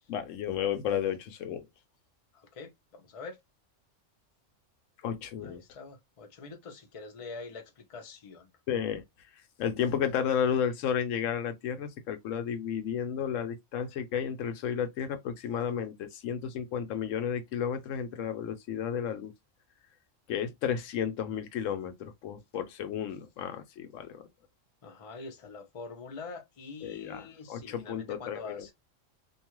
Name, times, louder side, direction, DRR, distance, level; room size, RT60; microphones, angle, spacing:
voice 1, 0.1-1.7 5.0-5.6 8.7-9.0 9.6-19.3 20.3-24.2 26.8-28.7, left 8 dB, 80° left, 1.0 m, -32 dB
voice 2, 2.3-3.4 5.4-8.5 24.8-28.7, left 4 dB, 35° left, 0.6 m, -45 dB
2.7 x 2.3 x 2.9 m
omnidirectional pair, 1.3 m